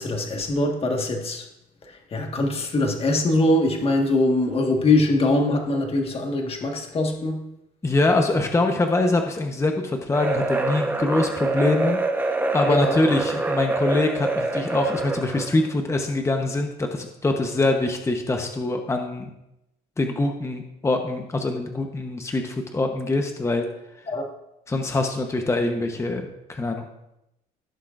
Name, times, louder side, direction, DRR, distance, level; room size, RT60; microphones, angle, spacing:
voice 1, 0.0-1.5 1.8-7.4 12.6-13.1 24.1-24.3, left 2 dB, 35° left, 2 dB, 1.6 m, -23 dB
voice 2, 7.8-12.0 12.5-19.3 20.0-23.7 24.7-26.9, left 2 dB, 15° left, 4 dB, 1.0 m, -24 dB
sound 1, 10.1-15.6, right 2 dB, 10° right, 1.0 m, -25 dB
16.0 x 6.5 x 2.5 m, 0.86 s
cardioid pair, 110°, 17 cm